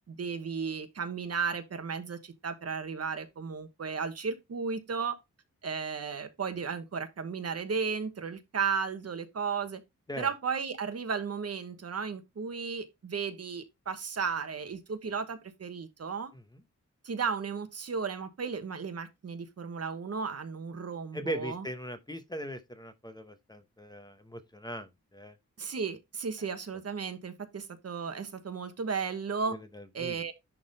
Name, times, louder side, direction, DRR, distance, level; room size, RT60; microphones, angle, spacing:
voice 1, 0.1-5.2 5.6-9.8 10.2-16.3 17.0-21.6 25.6-29.6 29.9-30.3, right 5 dB, 55° right, 1.2 m, -34 dB
voice 2, 21.1-25.4 29.5-30.2, equal, 15° left, 0.8 m, -40 dB
10.5 x 3.7 x 4.0 m
wide cardioid pair, 150°, 30 cm